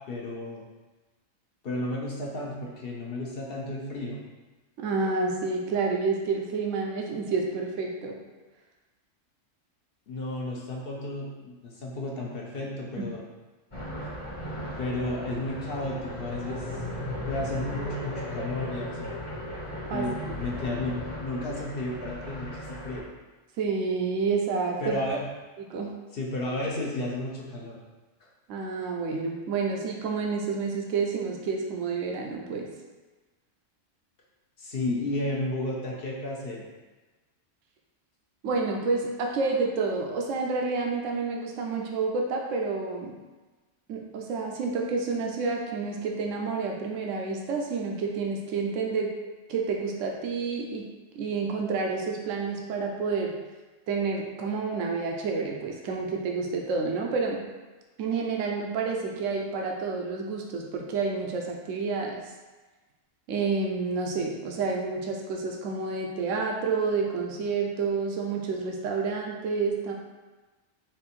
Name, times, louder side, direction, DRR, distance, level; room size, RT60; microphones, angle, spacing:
voice 1, 0.1-0.6 1.6-4.2 10.1-13.2 14.8-16.6 17.3-19.2 19.9-23.1 24.8-25.3 26.1-27.8 34.6-36.7, left 1 dB, 55° left, -2 dB, 0.9 m, -33 dB
voice 2, 4.8-8.1 13.0-13.1 19.9-20.1 23.6-25.0 25.7-25.9 28.5-32.7 38.4-43.2 43.9-49.1 49.5-50.9 51.2-53.4 53.9-57.4 58.0-62.1 63.3-69.9, right 4 dB, 80° right, 0 dB, 1.0 m, -29 dB
sound 1, 13.7-23.0, left 1 dB, 25° left, 0.9 m, -36 dB
4.3 x 2.6 x 4.2 m, 1.2 s
omnidirectional pair, 1.3 m